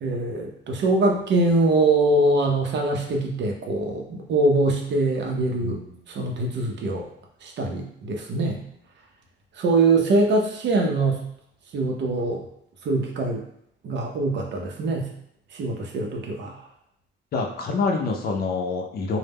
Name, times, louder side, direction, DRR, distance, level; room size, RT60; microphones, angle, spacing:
voice 1, 0.0-5.8 6.1-7.1 7.4-8.6 9.6-11.2 11.7-12.4 12.8-13.4 13.8-15.1 15.5-16.6, right 2 dB, 65° right, 1 dB, 0.6 m, -23 dB
voice 2, 17.3-19.2, left 4 dB, 50° left, 1 dB, 0.5 m, -26 dB
2.1 x 2.0 x 3.4 m, 0.71 s
cardioid pair, 90°, 20 cm